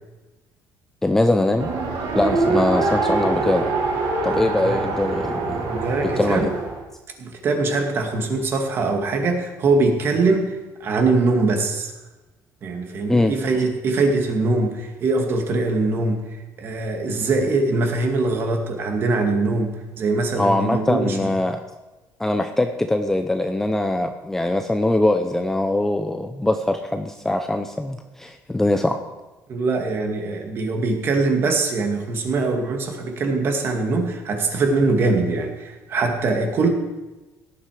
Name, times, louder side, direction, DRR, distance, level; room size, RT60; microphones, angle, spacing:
voice 1, 1.0-1.7 2.1-3.7 4.2-5.7 6.2-6.5 13.1-13.3 20.4-21.6 22.2-29.0, left 2 dB, 5° left, 6 dB, 0.6 m, -22 dB
Race car auto racing, 1.6-6.8, right 3 dB, 75° right, 3.8 m, -24 dB
voice 2, 4.3-4.8 5.7-6.5 7.2-11.9 12.6-16.2 16.6-21.3 29.5-36.7, right 3 dB, 35° right, 4 dB, 2.2 m, -22 dB
17.5 x 11.0 x 4.9 m, 1.1 s
cardioid pair, 170°, 6 cm